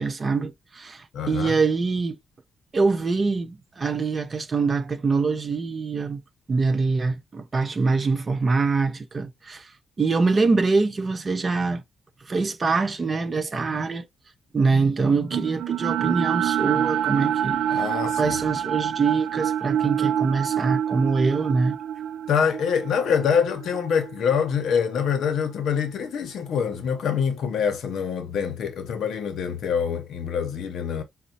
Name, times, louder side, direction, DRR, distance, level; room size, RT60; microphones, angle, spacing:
voice 1, 0.0-2.2 2.7-6.2 6.5-9.7 10.0-11.8 12.3-14.1 14.5-17.8 18.2-21.8, right 4 dB, 30° right, 0.6 m, -24 dB
voice 2, 1.1-1.6 17.7-18.4 22.3-31.0, left 7 dB, 70° left, 0.6 m, -25 dB
sound 1, 15.3-25.5, right 10 dB, 75° right, 0.3 m, -27 dB
5.3 x 2.1 x 2.7 m
cardioid pair, 130°, 0 cm